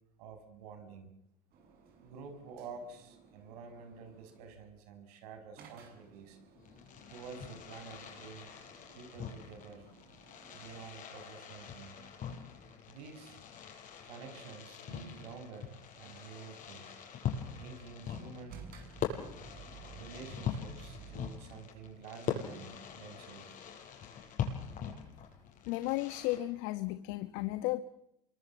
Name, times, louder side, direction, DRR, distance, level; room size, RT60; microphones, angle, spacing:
voice 1, 0.2-1.1 1.9-6.4 7.1-8.5 8.9-9.9 10.5-12.0 12.9-13.4 14.0-16.9 17.5-18.6 20.0-23.5, right 5 dB, 75° right, 6 dB, 6.0 m, -49 dB
sound 1, 1.5-4.6 5.6-10.8 18.5-21.4, right 5 dB, 50° right, 7.0 m, -55 dB
Fireworks, 6.6-26.4, left 7 dB, 45° left, 6.6 m, -43 dB
voice 2, 25.7-27.8, left 17 dB, 65° left, 12 dB, 1.2 m, -34 dB
28.0 x 23.5 x 7.1 m, 0.82 s
hypercardioid pair, 95°, 20 cm